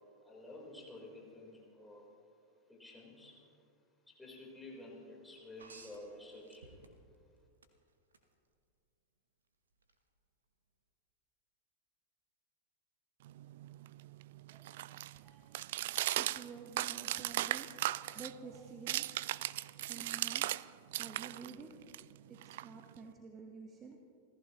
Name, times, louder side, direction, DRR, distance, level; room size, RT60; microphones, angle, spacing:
voice 1, 0.3-2.0 2.7-3.4 4.1-6.7, left 2 dB, 5° left, -3 dB, 4.1 m, -51 dB
sound 1, 5.6-7.2 7.6-8.2 9.8-9.9, right 4 dB, 70° right, 1.3 m, -57 dB
sound 2, 13.2-20.6 20.9-23.1, right 15 dB, 55° right, 0.3 m, -38 dB
voice 2, 14.5-15.9 16.2-19.4 19.9-20.5 21.0-21.7 22.3-24.0, right 5 dB, 25° right, 2 dB, 1.4 m, -51 dB
29.5 x 15.0 x 3.1 m, 2.4 s
figure-of-eight pair, 90°, 0 cm